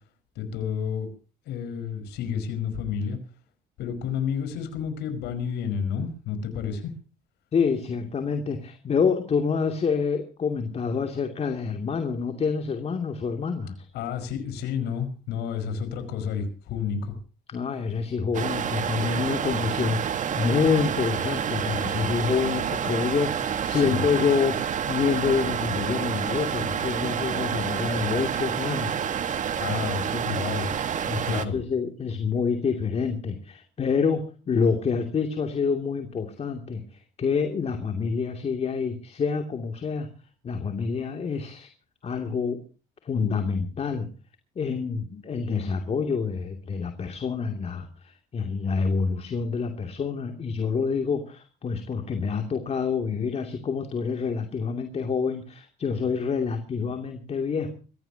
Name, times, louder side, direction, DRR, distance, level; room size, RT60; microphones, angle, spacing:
voice 1, 0.4-1.1 1.5-3.2 3.8-6.9 13.9-17.1 23.7-24.0 29.6-30.8 31.2-31.6, left 7 dB, 80° left, 8 dB, 5.3 m, -30 dB
voice 2, 7.5-13.9 17.5-29.3 29.7-29.8 30.1-30.2 31.1-40.1 40.4-41.7 42.0-42.6 43.0-44.1 44.6-57.7, left 5 dB, 40° left, 6 dB, 2.7 m, -27 dB
sound 1, 18.3-31.5, right 8 dB, 45° right, 1.9 m, -28 dB
24.5 x 16.5 x 2.9 m, 0.37 s
cardioid pair, 110°, 17 cm